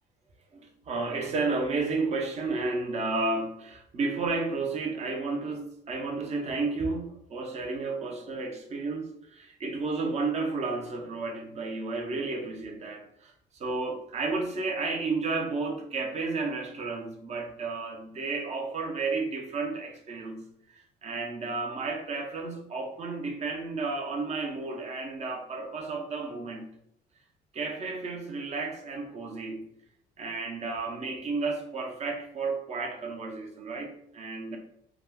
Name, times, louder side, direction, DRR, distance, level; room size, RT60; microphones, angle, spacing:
voice 1, 0.5-26.7 27.5-29.7 30.2-34.6, right 3 dB, 40° right, 3 dB, 0.7 m, -32 dB
2.4 x 2.3 x 3.5 m, 0.76 s
cardioid pair, 110°, 17 cm